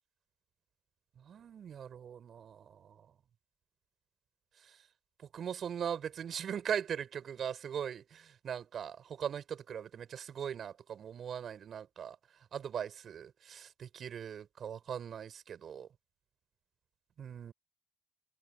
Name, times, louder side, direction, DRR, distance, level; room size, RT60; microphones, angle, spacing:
voice 1, 1.3-2.9 5.3-12.2 12.5-15.9 17.2-17.5, right 8 dB, 50° right, 6.4 m, -40 dB
open air
hypercardioid pair, 60°, 0 cm